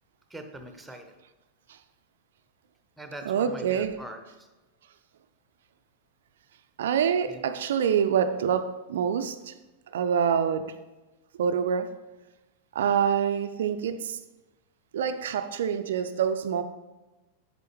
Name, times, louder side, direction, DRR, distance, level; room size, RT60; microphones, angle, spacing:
voice 1, 0.3-1.1 3.0-4.5 7.3-7.4, right 1 dB, 5° right, 6 dB, 0.9 m, -42 dB
voice 2, 3.3-3.9 6.8-9.5 9.9-10.7 11.4-11.9 12.7-14.2 14.9-16.6, right 7 dB, 60° right, 10 dB, 0.4 m, -26 dB
7.9 x 6.8 x 3.1 m, 1.1 s
figure-of-eight pair, 90°, 0 cm